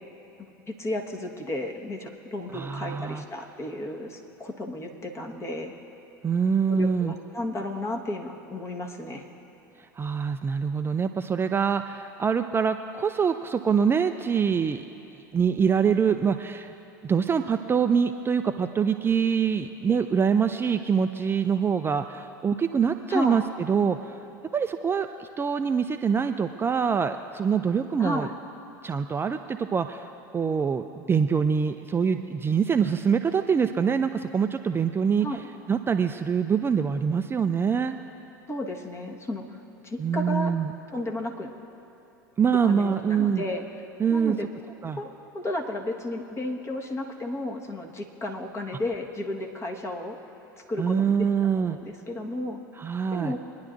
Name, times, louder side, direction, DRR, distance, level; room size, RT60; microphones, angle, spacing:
voice 1, 0.7-5.7 6.7-9.2 23.1-23.4 28.0-28.3 35.2-35.4 38.5-39.6 39.8-40.5 40.9-41.5 42.6-43.6 44.1-44.5 44.9-50.2 50.7-51.3 51.5-52.6 53.1-53.4, left 1 dB, 25° left, 1 dB, 1.5 m, -33 dB
voice 2, 2.5-3.2 6.2-7.1 10.0-14.8 15.3-16.7 17.0-23.4 23.7-24.3 24.5-28.3 28.8-35.4 35.7-38.0 40.0-40.7 42.4-43.4 44.0-44.4 44.8-45.0 50.8-51.8 52.8-53.3, right 6 dB, 20° right, 7 dB, 0.4 m, -25 dB
24.0 x 10.5 x 2.6 m, 2.9 s
hypercardioid pair, 80°, 11 cm